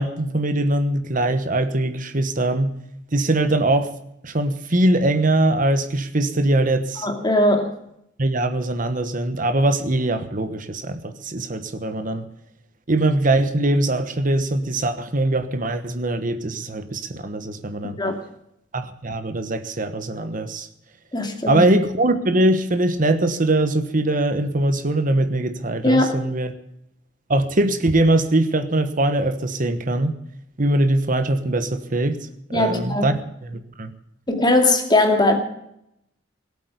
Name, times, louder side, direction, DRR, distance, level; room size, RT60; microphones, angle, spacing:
voice 1, 0.0-2.8 3.1-3.9 4.2-7.1 8.2-12.3 12.9-18.0 18.7-20.7 21.5-26.5 27.3-30.1 30.6-32.3 32.5-33.9, right 1 dB, 45° right, 1.2 m, -22 dB
voice 2, 7.0-7.7 18.0-18.2 21.1-21.6 25.8-26.1 32.5-33.1 34.3-35.4, left 2 dB, 25° left, 2.5 m, -19 dB
18.5 x 8.3 x 8.3 m
head